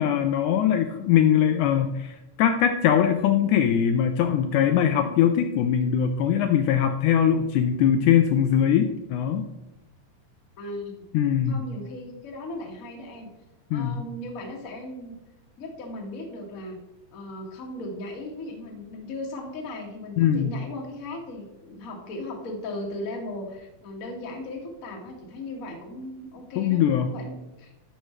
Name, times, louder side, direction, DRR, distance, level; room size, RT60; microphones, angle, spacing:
voice 1, 0.0-9.5 11.1-11.6 13.7-14.0 20.2-20.6 26.6-27.1, left 9 dB, 85° left, 7 dB, 1.7 m, -21 dB
voice 2, 10.6-11.1 11.5-13.3 13.7-15.1 15.6-16.8 17.1-27.7, left 1 dB, 45° left, 0 dB, 1.1 m, -37 dB
11.0 x 6.5 x 3.2 m, 1.0 s
omnidirectional pair, 4.0 m